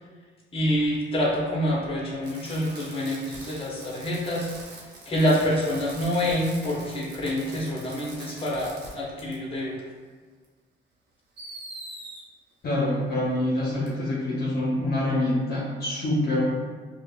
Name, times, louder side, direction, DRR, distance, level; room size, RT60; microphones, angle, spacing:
voice 1, 0.5-4.5 5.1-9.7, equal, 30° left, -5 dB, 1.1 m, -26 dB
Fireworks, 2.2-8.9 9.2-9.3 10.4-10.5 11.4-12.2 13.9-14.0, right 2 dB, 55° right, 0.9 m, -43 dB
voice 2, 12.6-16.4, left 1 dB, 55° left, -6 dB, 0.9 m, -26 dB
4.9 x 2.3 x 2.4 m, 1.4 s
cardioid pair, 90°, 20 cm